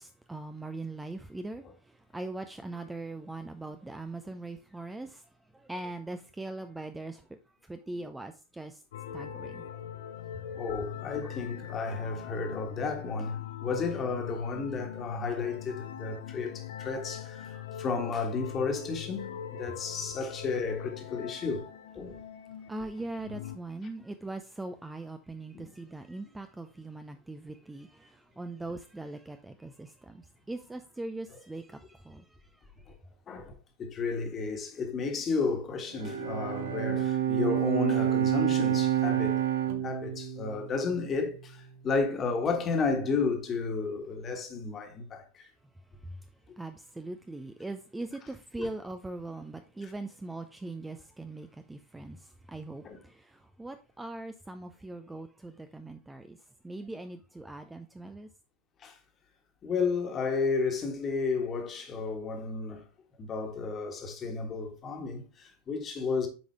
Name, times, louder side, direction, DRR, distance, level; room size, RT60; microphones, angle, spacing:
voice 1, 0.0-5.3 5.5-8.8 9.1-9.6 10.5-10.6 22.7-32.7 46.0-46.2 46.6-56.4 56.6-58.3, right 2 dB, 5° right, 0.4 m, -41 dB
sound 1, 8.9-23.6, left 10 dB, 55° left, 0.6 m, -41 dB
voice 2, 10.5-21.6 21.9-22.2 25.5-25.7 32.9-33.0 33.3-39.4 39.8-45.5 48.6-48.7 52.8-53.0 58.8-59.0 59.6-62.8 63.2-66.3, left 4 dB, 25° left, 1.5 m, -32 dB
Bowed string instrument, 35.9-41.4, right 11 dB, 55° right, 0.9 m, -29 dB
7.8 x 4.8 x 3.3 m
figure-of-eight pair, 90°, 0 cm